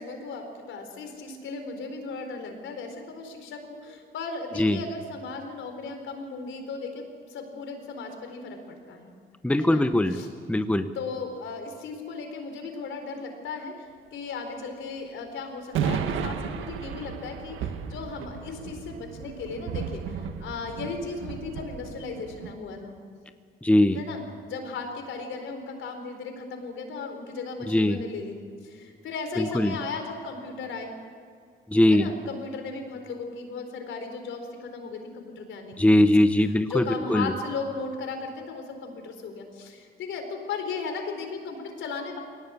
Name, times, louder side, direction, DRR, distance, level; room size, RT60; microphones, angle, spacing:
voice 1, 0.0-9.1 9.6-9.8 10.1-10.3 10.9-22.9 23.9-28.4 28.6-30.9 31.9-35.9 36.4-42.2, left 4 dB, 75° left, 5 dB, 4.4 m, -36 dB
voice 2, 9.4-10.2 10.5-10.9 23.6-24.0 27.7-28.0 29.4-29.7 31.7-32.1 35.8-36.8 37.1-37.3, left 1 dB, 5° left, 9 dB, 1.0 m, -20 dB
sound 1, 15.8-22.5, right 7 dB, 85° right, 1.5 m, -34 dB
22.5 x 18.5 x 8.5 m, 2.1 s
cardioid pair, 90°, 20 cm